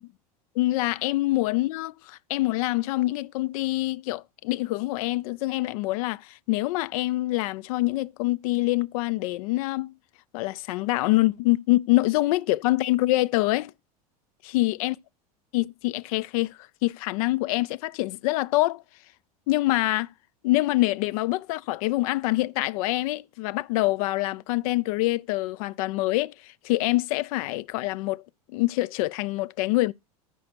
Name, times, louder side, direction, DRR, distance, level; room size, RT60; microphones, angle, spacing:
voice 1, 0.6-9.9 10.3-13.7 14.5-15.0 15.5-18.8 19.5-20.1 20.4-28.2 28.5-29.9, left 19 dB, 65° left, 0.5 m, -25 dB
13.5 x 5.1 x 4.4 m
hypercardioid pair, 90°, 20 cm